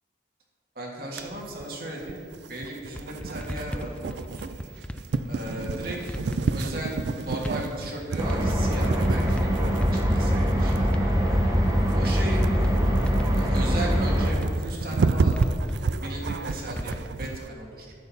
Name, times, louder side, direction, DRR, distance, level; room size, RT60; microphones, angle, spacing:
voice 1, 0.8-2.2 2.5-4.5 5.3-6.3 6.5-11.4 11.9-12.7 13.3-15.4 16.0-17.9, right 1 dB, 55° right, -2 dB, 1.9 m, -36 dB
sound 1, 1.2-17.5, right 4 dB, 70° right, 0.4 m, -31 dB
sound 2, 2.9-5.5 5.8-7.0 7.3-8.4 8.6-9.5 9.7-10.3 10.7-11.6 12.0-12.8 13.1-14.1 14.4-15.8 16.5-17.0, equal, 5° left, 0.4 m, -36 dB
sound 3, 8.2-14.3, equal, 20° right, 1.1 m, -23 dB
10.5 x 9.0 x 4.2 m, 2.3 s
head